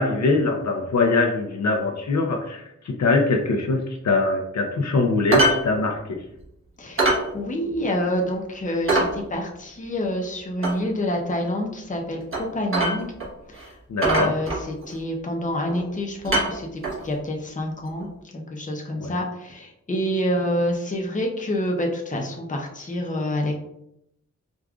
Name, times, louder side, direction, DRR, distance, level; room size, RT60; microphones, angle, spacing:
voice 1, 0.0-6.2 13.9-14.3 19.0-19.1, left 3 dB, 65° left, 2 dB, 0.6 m, -22 dB
Ceramic Plate Sounds, 5.3-5.6 5.9-6.0 6.4-6.5 7.0-7.3 7.7-7.8 8.2-8.3 8.9-9.1 10.6-10.8 12.3-12.4 12.7-13.3 13.5-13.7 14.0-14.9 15.7-15.9 16.2-17.0 18.0-18.1, right 2 dB, 45° right, 1.2 m, -22 dB
voice 2, 6.8-13.1 13.5-13.7 14.0-18.1 18.3-23.6, left 1 dB, 25° left, 1 dB, 0.6 m, -27 dB
4.9 x 2.4 x 2.3 m, 0.79 s
wide cardioid pair, 110°, 29 cm